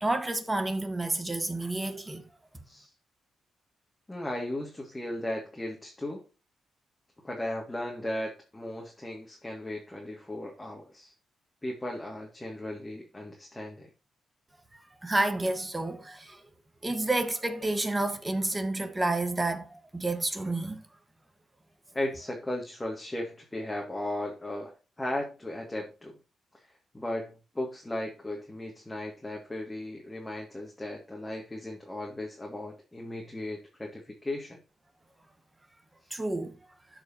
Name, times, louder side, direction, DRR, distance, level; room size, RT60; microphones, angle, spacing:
voice 1, 0.0-2.2 15.0-16.4 16.8-20.8 36.1-36.5, right 2 dB, 20° right, 1.3 m, -30 dB
voice 2, 4.1-6.3 7.2-11.1 11.6-13.9 21.9-26.2 26.9-34.6, left 1 dB, 15° left, 2.0 m, -36 dB
12.5 x 4.9 x 2.8 m
cardioid pair, 75°, 0 cm